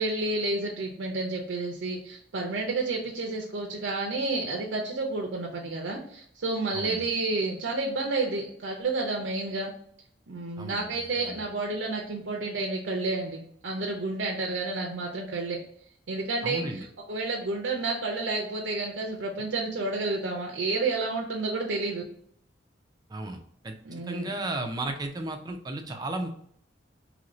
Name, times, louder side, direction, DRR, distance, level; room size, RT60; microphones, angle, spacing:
voice 1, 0.0-9.7 10.3-15.6 16.1-22.0 23.8-24.3, right 3 dB, 75° right, 0 dB, 0.5 m, -30 dB
voice 2, 6.7-7.0 10.6-11.4 16.4-16.9 23.1-23.4 23.6-26.3, right 2 dB, 20° right, 5 dB, 0.4 m, -34 dB
2.8 x 2.6 x 3.0 m, 0.64 s
head